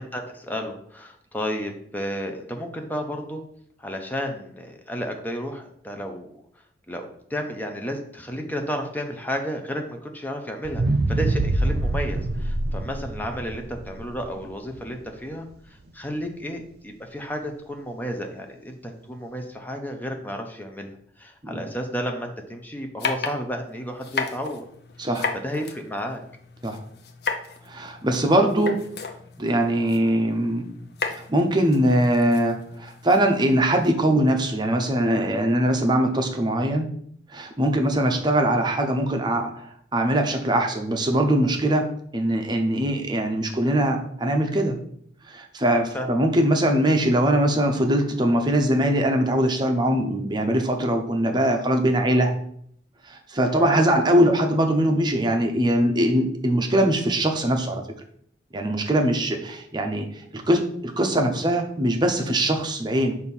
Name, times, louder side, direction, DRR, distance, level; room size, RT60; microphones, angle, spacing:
voice 1, 0.0-3.4 3.8-6.4 6.9-20.9 21.2-24.6 25.3-26.2 45.9-46.1 52.0-52.1 53.5-53.7, equal, 10° left, 4 dB, 0.7 m, -32 dB
sound 1, 10.6-14.9 15.4-15.5, right 2 dB, 55° right, 0.5 m, -25 dB
sound 2, 23.0-33.9, left 4 dB, 60° left, 0.7 m, -35 dB
voice 2, 25.0-25.3 26.6-26.8 27.7-28.8 29.4-30.6 31.1-36.9 37.3-41.9 42.1-44.8 45.3-52.3 53.1-57.8 58.5-60.1 60.3-63.1, right 1 dB, 25° right, 3 dB, 0.7 m, -22 dB
6.4 x 2.7 x 5.5 m, 0.65 s
head